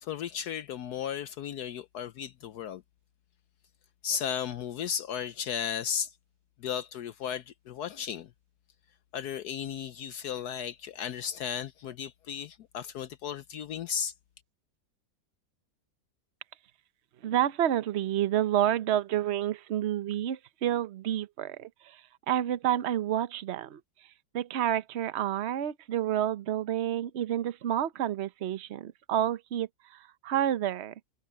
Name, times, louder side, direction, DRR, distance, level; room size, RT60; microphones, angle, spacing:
voice 1, 0.0-2.8 4.0-6.2 6.6-8.3 9.1-14.1, left 8 dB, 70° left, 1.1 m, -35 dB
voice 2, 17.2-24.1 24.3-30.9, right 11 dB, 55° right, 0.8 m, -29 dB
omnidirectional pair, 1.9 m